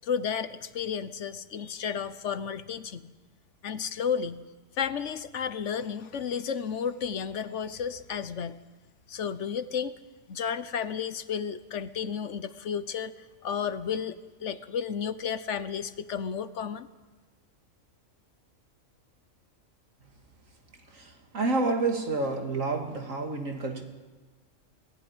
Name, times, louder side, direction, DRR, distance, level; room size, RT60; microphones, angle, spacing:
voice 1, 0.0-3.1 3.6-4.4 4.8-8.5 9.1-9.9 10.3-13.1 13.4-16.9, left 7 dB, 65° left, 13 dB, 1.1 m, -32 dB
voice 2, 20.9-23.8, right 3 dB, 75° right, 3 dB, 2.6 m, -29 dB
19.0 x 15.0 x 9.7 m, 1.3 s
omnidirectional pair, 1.4 m